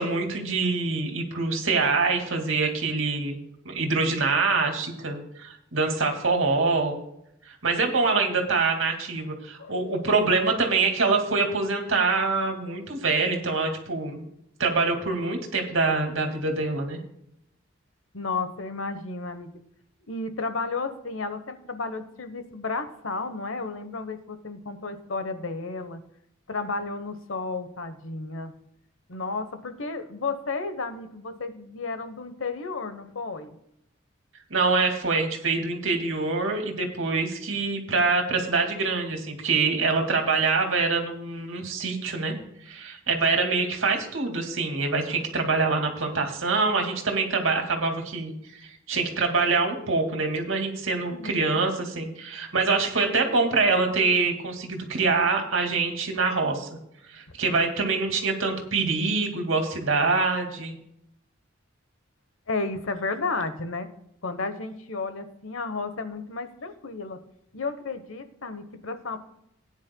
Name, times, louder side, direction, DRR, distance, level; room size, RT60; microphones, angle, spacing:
voice 1, 0.0-3.4 3.6-7.0 7.5-14.2 14.6-17.0 34.5-42.4 42.6-56.7 57.1-60.7, right 4 dB, 80° right, 3 dB, 2.2 m, -25 dB
voice 2, 18.1-19.5 20.1-26.0 26.5-28.5 29.1-33.6 51.0-51.7 62.5-63.9 64.2-67.2 67.5-69.2, left 3 dB, 85° left, 10 dB, 1.1 m, -32 dB
18.0 x 9.7 x 2.3 m, 0.76 s
head